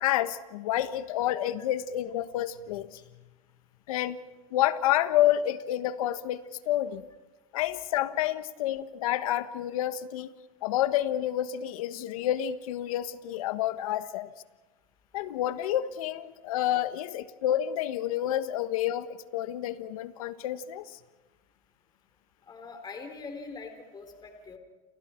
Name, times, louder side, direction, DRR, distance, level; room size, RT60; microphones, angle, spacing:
voice 1, 0.0-3.0 3.9-4.2 4.5-7.1 7.5-10.3 10.6-14.3 15.1-20.8, left 12 dB, 85° left, 12 dB, 1.4 m, -29 dB
voice 2, 22.5-24.6, left 4 dB, 25° left, 6 dB, 3.7 m, -42 dB
29.5 x 29.5 x 4.5 m, 1.2 s
supercardioid pair, 130°, 18 cm